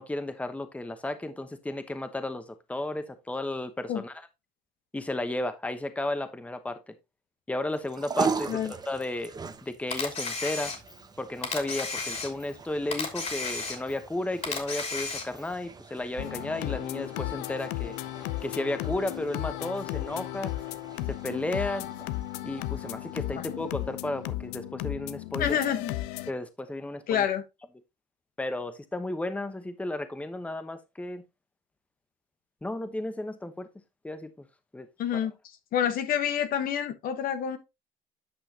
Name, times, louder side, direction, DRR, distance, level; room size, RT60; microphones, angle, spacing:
voice 1, 0.0-2.4 2.7-4.1 4.9-6.9 7.5-8.6 8.9-9.3 9.6-10.7 11.2-18.0 18.4-20.5 21.1-21.9 22.4-25.6 26.3-27.3 28.4-31.2 32.6-33.7 34.0-34.5 34.7-34.9, left 2 dB, 10° left, 1.0 m, -33 dB
sound 1, 7.7-24.2, right 5 dB, 25° right, 0.9 m, -40 dB
Camera, 9.9-11.1 11.4-12.6 12.9-14.1 14.4-15.5, left 4 dB, 40° left, 2.9 m, -33 dB
sound 2, 16.2-26.3, left 16 dB, 85° left, 0.6 m, -35 dB
voice 2, 25.4-25.9 27.1-27.4 35.0-35.3 35.7-37.6, left 9 dB, 60° left, 1.2 m, -27 dB
9.7 x 5.6 x 2.8 m
supercardioid pair, 90°, 17 cm